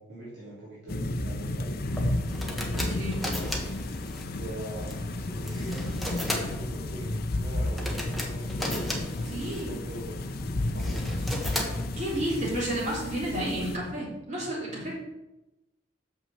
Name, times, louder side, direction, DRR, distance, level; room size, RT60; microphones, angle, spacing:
voice 1, 0.0-1.7 2.5-3.7 4.2-9.0 9.7-10.3 10.7-11.2 14.7-14.9, right 1 dB, 70° right, -9 dB, 3.1 m, -42 dB
sound 1, 0.9-13.8, left 1 dB, 55° left, 0.6 m, -32 dB
sound 2, 1.9-13.1, left 1 dB, ahead, 1.3 m, -38 dB
voice 2, 9.3-9.7 12.0-14.9, right 1 dB, 40° right, -6 dB, 3.6 m, -31 dB
6.4 x 5.8 x 7.2 m, 0.98 s
head